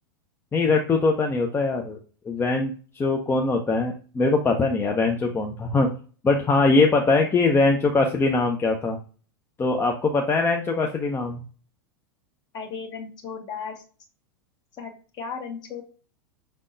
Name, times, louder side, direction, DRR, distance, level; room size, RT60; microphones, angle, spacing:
voice 1, 0.5-2.0 2.3-5.9 6.2-9.0 9.6-11.4, left 3 dB, 20° left, 2 dB, 0.6 m, -22 dB
voice 2, 12.5-13.8 14.8-15.8, left 5 dB, 35° left, 3 dB, 1.1 m, -35 dB
5.4 x 3.5 x 2.6 m, 0.38 s
figure-of-eight pair, 95°, 12 cm